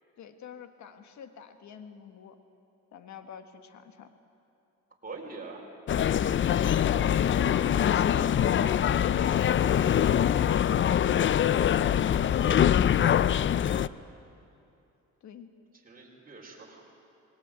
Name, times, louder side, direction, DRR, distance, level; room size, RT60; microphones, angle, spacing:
voice 1, 0.2-2.4 2.9-4.1 6.7-13.2 15.2-15.5, left 7 dB, 70° left, 8 dB, 1.6 m, -43 dB
voice 2, 5.0-5.7 15.8-16.8, right 3 dB, 30° right, -1 dB, 5.0 m, -43 dB
sound 1, 5.9-13.9, left 9 dB, 40° left, 0.5 m, -24 dB
20.5 x 18.5 x 9.1 m, 2.7 s
cardioid pair, 90°, 30 cm